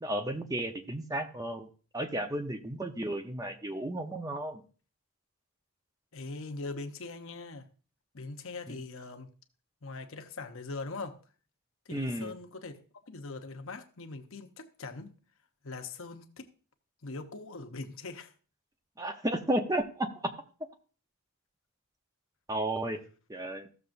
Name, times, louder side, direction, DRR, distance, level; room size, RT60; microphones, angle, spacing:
voice 1, 0.0-1.7 1.9-4.6 8.7-8.8 11.9-12.3 19.0-20.1 22.5-23.0 23.3-23.7, right 1 dB, 15° right, 0.8 m, -33 dB
voice 2, 6.1-7.7 8.1-9.3 9.8-11.2 11.9-12.7 13.1-15.1 15.6-16.5 17.0-18.3, left 3 dB, 65° left, 0.9 m, -41 dB
15.0 x 6.8 x 2.6 m
head